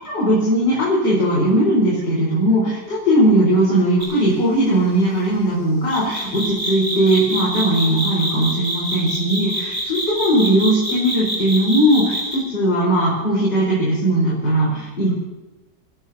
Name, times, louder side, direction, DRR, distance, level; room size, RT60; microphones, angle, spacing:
voice 1, 0.1-15.1, right 1 dB, 75° left, -7 dB, 5.2 m, -18 dB
sound 1, 4.0-4.2 5.9-12.4, equal, 65° right, 8.1 m, -25 dB
30.0 x 17.0 x 2.8 m, 1.1 s
omnidirectional pair, 1.9 m